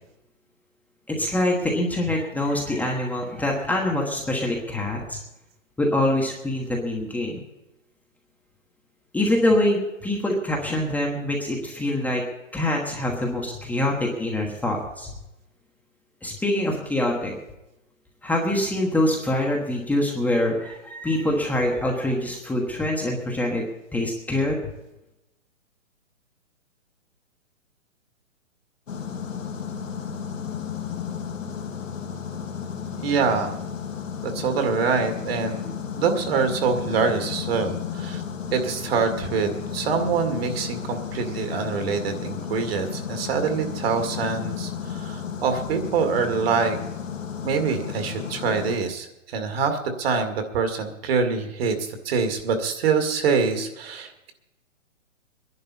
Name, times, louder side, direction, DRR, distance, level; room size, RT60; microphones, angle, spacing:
voice 1, 1.1-5.2 5.8-7.4 9.1-12.2 12.5-15.1 16.2-17.3 18.2-23.6 23.9-24.6, left 1 dB, 5° left, -1 dB, 1.2 m, -24 dB
sound 1, 28.9-48.8, left 7 dB, 75° left, 2.1 m, -33 dB
voice 2, 33.0-33.6 34.2-38.2 38.5-46.8 47.4-54.3, right 5 dB, 50° right, 6 dB, 2.2 m, -25 dB
22.5 x 11.0 x 4.2 m, 0.95 s
hypercardioid pair, 140°, 39 cm